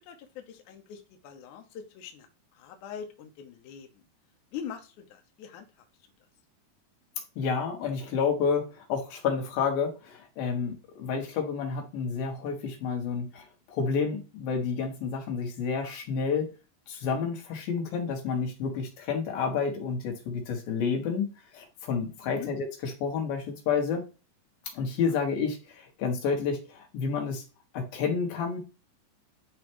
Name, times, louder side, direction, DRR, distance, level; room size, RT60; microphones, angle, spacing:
voice 1, 0.1-2.3 2.5-4.0 4.5-5.7 22.2-22.5 25.1-25.2, left 8 dB, 70° left, 5 dB, 2.1 m, -43 dB
voice 2, 7.4-16.5 16.9-21.3 21.5-24.0 24.7-27.4 27.7-28.6, left 5 dB, 90° left, 2 dB, 3.3 m, -30 dB
9.9 x 3.3 x 3.0 m, 0.31 s
omnidirectional pair, 4.0 m